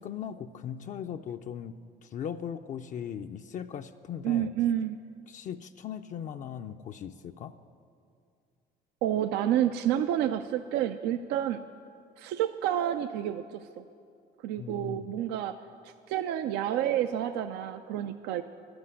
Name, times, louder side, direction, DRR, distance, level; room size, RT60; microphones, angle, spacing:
voice 1, 0.0-4.5 5.3-7.5 14.6-15.1, left 8 dB, 50° left, 6 dB, 0.4 m, -39 dB
voice 2, 4.2-5.0 9.0-11.6 12.2-13.8 14.4-15.6 15.8-18.4, right 11 dB, 90° right, 10 dB, 0.4 m, -29 dB
11.5 x 7.9 x 9.8 m, 2.4 s
cardioid pair, 110°, 17 cm